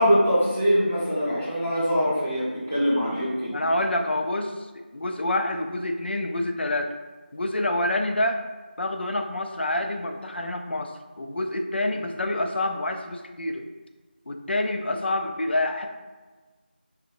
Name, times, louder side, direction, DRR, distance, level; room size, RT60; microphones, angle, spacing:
voice 1, 0.0-3.5, equal, 10° right, -12 dB, 0.4 m, -23 dB
voice 2, 3.5-6.9 7.3-8.4 8.8-13.6 14.3-15.9, left 1 dB, 75° left, 4 dB, 0.4 m, -27 dB
3.2 x 2.1 x 2.6 m, 1.3 s
figure-of-eight pair, 175°, 6 cm